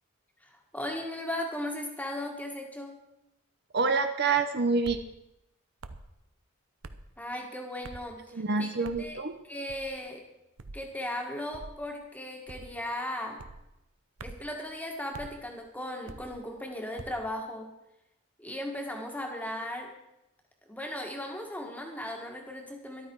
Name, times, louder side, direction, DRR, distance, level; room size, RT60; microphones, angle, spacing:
voice 1, 0.4-3.0 7.2-9.2 9.5-10.2 10.7-13.4 14.2-17.7 18.4-19.9 20.7-23.1, left 1 dB, 5° left, 2 dB, 1.8 m, -37 dB
voice 2, 3.7-5.0 8.3-9.4, right 4 dB, 50° right, 8 dB, 0.7 m, -27 dB
sound 1, 4.8-5.1 5.8-6.1 6.8-7.1 7.8-8.1 8.8-9.1 9.7-10.0 10.6-10.8 11.5-11.8 12.5-12.8 13.4-13.6 14.2-14.5 15.1-15.3 16.1-16.4 17.0-17.2, right 3 dB, 75° right, 0.8 m, -45 dB
13.5 x 12.0 x 4.7 m, 0.90 s
head